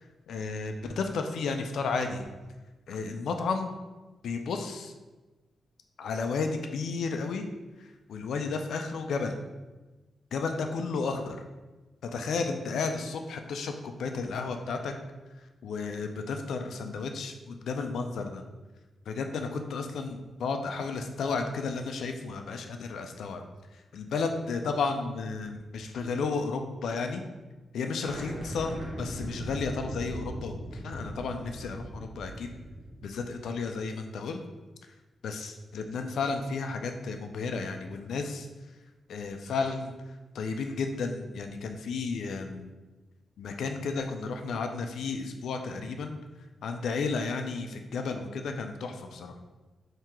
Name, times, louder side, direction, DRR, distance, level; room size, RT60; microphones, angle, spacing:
voice 1, 0.3-2.2 2.9-3.7 4.2-4.9 6.0-7.5 7.8-9.4 10.3-11.4 12.0-14.9 15.6-18.4 19.1-23.4 23.7-27.2 27.7-32.5 33.0-34.4 35.2-38.5 39.1-39.9 40.3-42.7 43.4-46.2 46.6-49.4, left 4 dB, 80° left, 5 dB, 0.4 m, -33 dB
sound 1, 28.0-33.3, right 1 dB, 35° right, 1.1 m, -39 dB
3.6 x 2.8 x 4.4 m, 1.2 s
wide cardioid pair, 160°, 0 cm